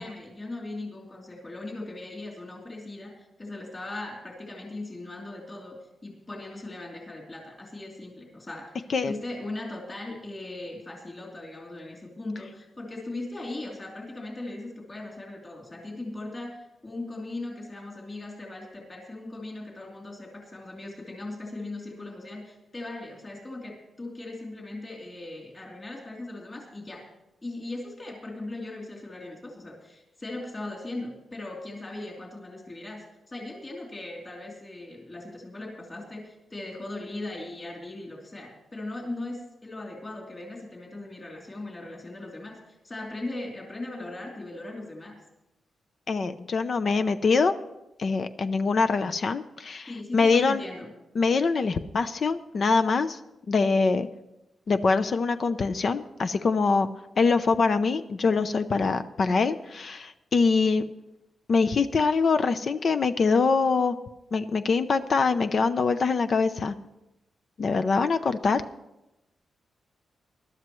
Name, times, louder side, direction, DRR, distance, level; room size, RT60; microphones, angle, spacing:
voice 1, 0.0-27.1 27.4-45.2 49.9-50.9, left 2 dB, 25° left, -1 dB, 3.1 m, -39 dB
voice 2, 46.1-47.5 48.0-50.6 51.2-53.2 53.5-54.1 54.7-56.9 57.2-60.8 61.5-64.0 64.3-66.7 67.6-68.6, left 4 dB, 45° left, 10 dB, 0.5 m, -24 dB
20.5 x 12.0 x 3.1 m, 0.93 s
wide cardioid pair, 130°, 0 cm